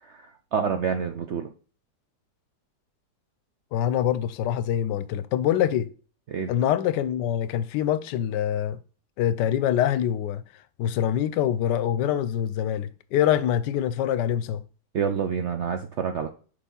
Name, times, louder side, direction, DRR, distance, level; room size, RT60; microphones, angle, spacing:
voice 1, 0.0-1.5 6.3-6.5 14.9-16.3, right 7 dB, 70° right, 0.6 m, -28 dB
voice 2, 3.7-5.9 6.5-8.8 9.2-10.4 10.8-14.6, left 10 dB, 85° left, 1.2 m, -25 dB
6.8 x 4.6 x 3.8 m
omnidirectional pair, 1.8 m